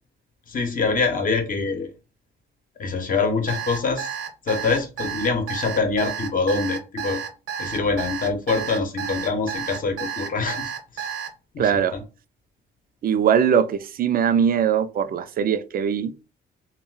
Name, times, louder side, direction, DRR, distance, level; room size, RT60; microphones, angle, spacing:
voice 1, 0.5-1.9 2.8-4.1 4.4-7.2 7.6-11.1 11.5-12.0, left 4 dB, 45° left, 0.8 m, -25 dB
Alarm, 3.5-11.3, right 8 dB, 90° right, 0.7 m, -31 dB
voice 2, 11.6-11.9 13.0-16.1, right 8 dB, 50° right, 0.4 m, -21 dB
2.3 x 2.0 x 3.7 m
cardioid pair, 90°, 20 cm